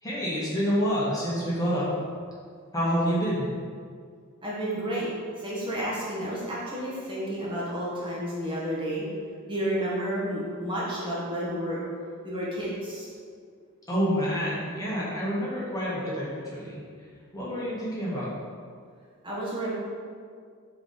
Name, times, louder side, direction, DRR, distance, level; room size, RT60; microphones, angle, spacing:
voice 1, 0.0-1.9 2.7-3.5 13.9-16.8 17.3-18.3, equal, 15° left, -8 dB, 1.4 m, -28 dB
voice 2, 4.4-5.1 5.4-9.0 9.5-11.8 12.2-13.1 19.2-19.7, right 1 dB, 25° right, -8 dB, 1.3 m, -31 dB
4.7 x 4.0 x 5.1 m, 2.1 s
head